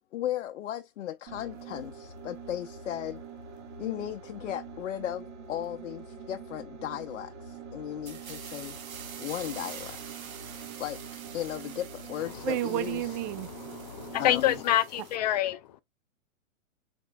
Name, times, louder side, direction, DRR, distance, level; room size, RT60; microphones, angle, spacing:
voice 1, 0.1-3.2 3.8-8.8 9.2-10.0 10.8-13.2 14.2-14.6, left 11 dB, 65° left, 0.7 m, -36 dB
sound 1, 1.3-14.8, right 5 dB, 60° right, 3.3 m, -45 dB
sound 2, 8.1-15.2, right 7 dB, 85° right, 1.5 m, -46 dB
voice 2, 12.4-13.5, right 15 dB, 30° right, 0.6 m, -31 dB
voice 3, 13.3-15.8, left 13 dB, 35° left, 0.4 m, -27 dB
5.0 x 4.3 x 2.2 m
hypercardioid pair, 130°, 40 cm